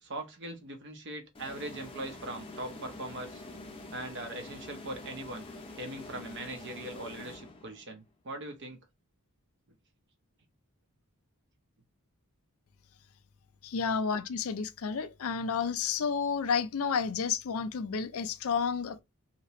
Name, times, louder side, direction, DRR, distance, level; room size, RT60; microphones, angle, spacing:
voice 1, 0.0-3.4 3.9-5.5 5.8-8.8, right 1 dB, 55° right, 0.8 m, -40 dB
sound 1, 1.3-8.0, left 2 dB, 25° left, 0.6 m, -46 dB
voice 2, 13.6-19.0, left 6 dB, 70° left, 0.4 m, -31 dB
2.9 x 2.9 x 3.0 m
head